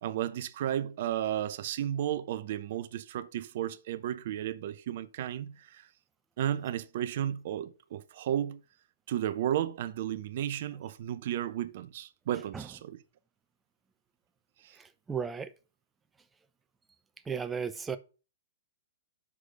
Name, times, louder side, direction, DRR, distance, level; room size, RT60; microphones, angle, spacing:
voice 1, 0.0-5.9 6.4-8.6 9.1-13.0 14.6-14.8, right 11 dB, 50° right, 0.5 m, -33 dB
voice 2, 14.8-15.5 17.3-18.0, right 6 dB, 10° right, 0.7 m, -35 dB
6.1 x 4.8 x 6.3 m
figure-of-eight pair, 110°, 0 cm